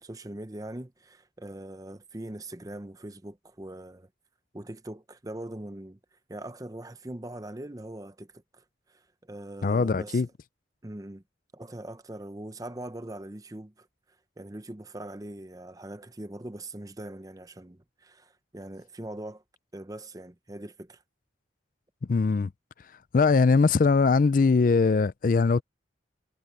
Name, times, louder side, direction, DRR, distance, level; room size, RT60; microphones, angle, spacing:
voice 1, 0.0-4.1 4.5-6.0 6.3-8.6 8.9-10.3 10.8-11.2 11.5-13.9 14.4-19.4 19.7-21.0, right 1 dB, 20° right, 0.7 m, -41 dB
voice 2, 9.6-10.3 22.1-22.5 23.1-25.6, left 4 dB, 45° left, 0.4 m, -21 dB
head